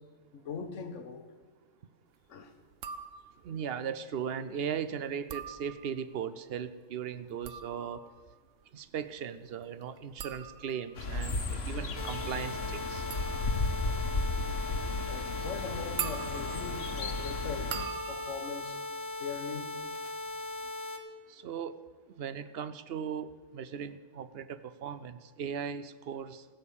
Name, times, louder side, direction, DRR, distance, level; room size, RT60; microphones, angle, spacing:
voice 1, 0.3-1.3 2.3-2.5 15.1-17.7 18.1-18.8 19.2-19.8, left 5 dB, 80° left, 8 dB, 1.3 m, -40 dB
sound 1, 2.7-3.6 5.1-6.2 7.2-19.9 20.2-20.7, right 9 dB, 85° right, 1.1 m, -44 dB
voice 2, 3.4-8.0 8.7-13.1 21.3-21.7 22.2-26.4, right 7 dB, 60° right, 13 dB, 0.8 m, -38 dB
sound 2, 11.0-17.9, left 3 dB, 60° left, 1.3 m, -34 dB
sound 3, 12.0-21.0, left 3 dB, 35° left, 0.9 m, -39 dB
15.5 x 6.7 x 7.2 m, 1.4 s
omnidirectional pair, 1.3 m